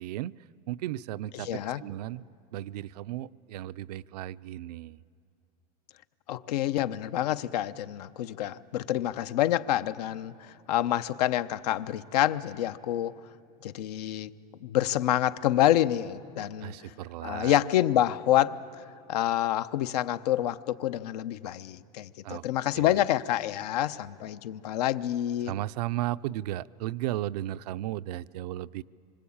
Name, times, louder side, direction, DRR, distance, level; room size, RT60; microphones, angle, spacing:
voice 1, 0.0-2.2 2.5-5.0 16.6-17.6 22.2-22.5 22.7-23.0 25.4-28.8, right 14 dB, 85° right, 14 dB, 0.5 m, -35 dB
voice 2, 1.3-1.8 6.3-13.1 13.6-14.3 14.6-16.7 17.2-18.6 19.1-25.5, left 12 dB, 90° left, 13 dB, 0.9 m, -27 dB
26.0 x 25.0 x 8.7 m, 2.8 s
supercardioid pair, 170°, 20 cm